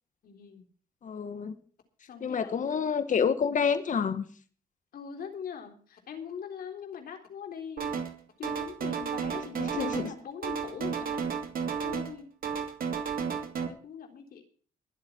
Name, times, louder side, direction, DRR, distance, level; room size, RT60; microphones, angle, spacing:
voice 1, 0.2-0.7 2.0-2.6 4.9-7.9 8.4-11.2 11.8-12.4 13.7-14.4, left 7 dB, 75° left, 4 dB, 3.8 m, -42 dB
voice 2, 1.0-1.5 2.2-4.3 9.7-10.1, left 6 dB, 55° left, 10 dB, 1.7 m, -28 dB
sound 1, 7.8-8.2 8.4-10.2 10.4-12.2 12.4-13.7, right 6 dB, 70° right, 2.7 m, -32 dB
22.5 x 8.1 x 4.6 m, 0.42 s
cardioid pair, 70°, 16 cm